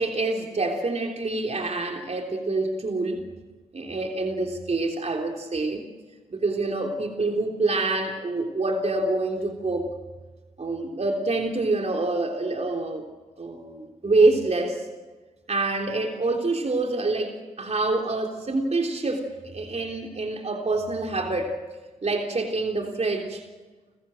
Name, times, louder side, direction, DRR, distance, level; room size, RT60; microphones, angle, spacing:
voice 1, 0.0-3.2 3.7-5.8 6.3-9.9 10.6-13.0 13.4-14.9 15.5-21.6 22.0-23.4, right 2 dB, 45° right, 2 dB, 3.6 m, -26 dB
29.0 x 15.0 x 7.8 m, 1.3 s
cardioid pair, 50°, 15 cm